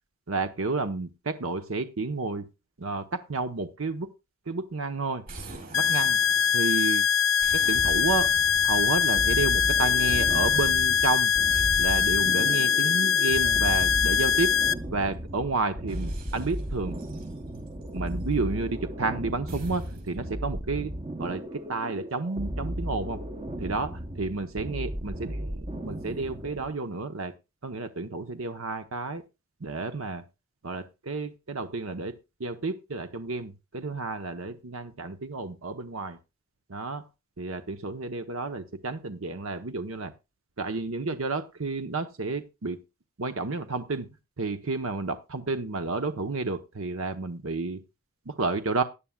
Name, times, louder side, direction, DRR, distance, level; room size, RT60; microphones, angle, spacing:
voice 1, 0.3-2.5 2.8-4.1 4.5-5.2 5.7-6.2 6.5-7.0 7.5-8.3 8.6-11.3 11.8-14.5 14.9-16.9 17.9-20.9 21.2-23.2 23.6-27.3 27.6-29.2 29.6-30.2 30.6-32.1 32.4-36.2 36.7-37.0 37.4-40.1 40.6-42.8 43.2-44.1 44.4-47.8 48.3-48.8, right 3 dB, 75° right, 9 dB, 0.9 m, -31 dB
sound 1, 5.3-6.9 7.4-9.7 10.1-10.9 11.5-12.5 13.3-15.1 15.9-18.3 19.5-20.2, equal, 45° right, 5.5 m, -40 dB
sound 2, 5.7-14.7, left 8 dB, 85° left, 0.7 m, -23 dB
sound 3, 9.2-26.8, equal, 25° right, 0.8 m, -36 dB
16.5 x 10.0 x 2.3 m, 0.26 s
head